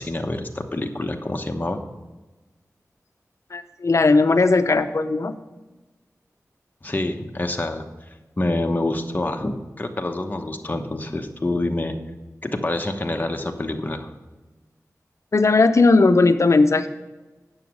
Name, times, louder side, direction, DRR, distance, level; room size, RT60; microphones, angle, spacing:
voice 1, 0.0-1.8 6.8-7.9 8.4-11.9 12.4-14.1, left 2 dB, 30° left, 4 dB, 1.0 m, -27 dB
voice 2, 3.5-5.3 15.3-16.9, left 3 dB, 60° left, 9 dB, 0.7 m, -17 dB
9.3 x 7.0 x 6.2 m, 1.2 s
wide cardioid pair, 85°, 6 cm